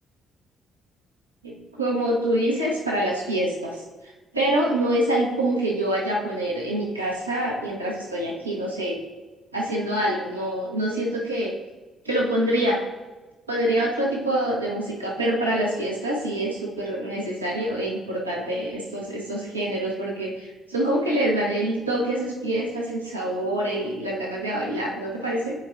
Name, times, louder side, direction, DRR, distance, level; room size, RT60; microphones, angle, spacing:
voice 1, 1.4-3.8 4.3-9.0 9.5-11.5 12.0-12.8 13.5-25.5, right 1 dB, 90° right, -4 dB, 0.8 m, -25 dB
9.5 x 4.6 x 2.5 m, 1.2 s
figure-of-eight pair, 45°, 0 cm